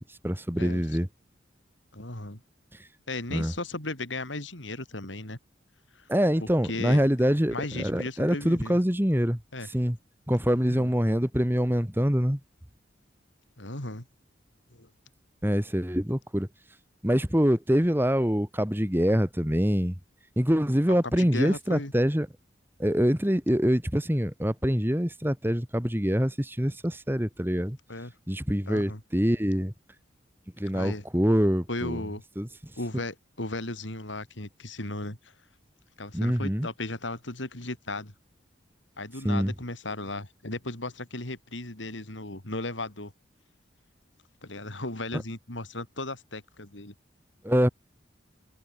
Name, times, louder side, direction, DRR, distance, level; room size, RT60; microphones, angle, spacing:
voice 1, 0.2-1.1 3.3-3.5 6.1-9.4 9.7-10.0 10.3-12.4 15.4-16.5 17.0-19.9 20.4-22.3 22.8-27.8 28.3-29.7 30.6-32.0 32.4-32.5 36.1-36.7 39.2-39.5 47.4-47.7, equal, 10° right, 2.3 m, -25 dB
voice 2, 1.9-2.4 3.1-5.4 5.9-6.1 6.4-7.0 7.5-8.8 9.5-9.7 10.6-10.9 13.6-14.1 14.7-14.9 21.2-21.9 27.9-28.1 28.7-29.0 30.7-31.0 31.7-32.2 32.8-35.2 36.0-38.1 39.0-43.1 44.4-46.9, left 2 dB, 80° left, 4.5 m, -36 dB
head